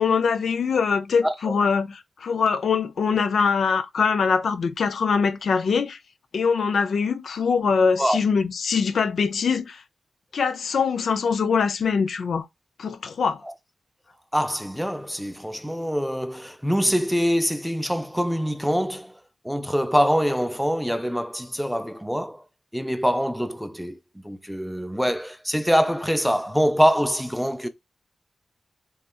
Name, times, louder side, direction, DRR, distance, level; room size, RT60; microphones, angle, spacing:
voice 1, 0.0-6.0 6.3-9.8 10.3-12.5 12.8-13.4, left 5 dB, 75° left, 0.3 m, -23 dB
voice 2, 1.2-1.5 8.0-8.2 13.4-13.5 14.3-19.1 19.4-22.4 22.7-24.0 24.2-27.7, equal, ahead, 0.4 m, -24 dB
2.7 x 2.3 x 2.3 m
cardioid pair, 60°, 0 cm